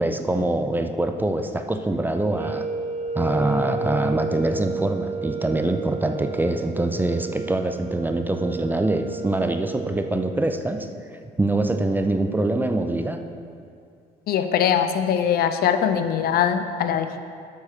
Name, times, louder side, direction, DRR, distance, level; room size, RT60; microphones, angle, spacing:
voice 1, 0.0-2.7 3.1-13.2, right 2 dB, 10° right, 7 dB, 0.5 m, -24 dB
sound 1, 2.2-10.4, right 4 dB, 35° right, 1.1 m, -32 dB
voice 2, 14.3-17.2, left 8 dB, 65° left, 9 dB, 0.6 m, -22 dB
8.5 x 5.6 x 6.5 m, 2.3 s
cardioid pair, 110°, 17 cm